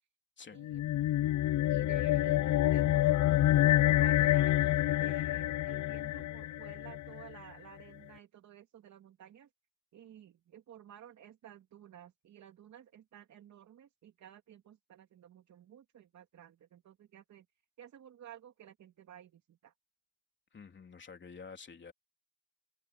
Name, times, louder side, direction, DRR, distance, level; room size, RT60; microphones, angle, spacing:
voice 1, 0.5-0.9 1.7-9.5 9.9-17.5 17.8-19.7, right 11 dB, 65° right, 2.8 m, -54 dB
sound 1, 0.6-7.3, left 14 dB, 70° left, 0.6 m, -28 dB
voice 2, 20.5-21.9, left 5 dB, 40° left, 3.4 m, -49 dB
cardioid pair, 90°, 30 cm